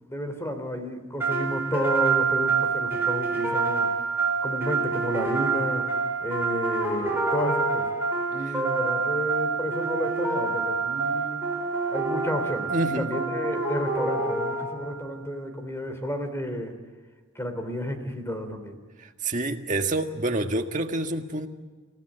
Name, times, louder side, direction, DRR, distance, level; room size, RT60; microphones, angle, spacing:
voice 1, 0.1-3.9 4.4-5.9 6.2-7.9 8.3-11.4 11.9-16.7 17.3-18.8, equal, 15° left, 7 dB, 3.2 m, -31 dB
sound 1, 1.2-15.1, right 4 dB, 10° right, 4.5 m, -27 dB
voice 2, 12.7-13.1 19.0-21.5, right 2 dB, 35° right, 4 dB, 1.7 m, -27 dB
28.0 x 16.5 x 8.9 m, 1.4 s
head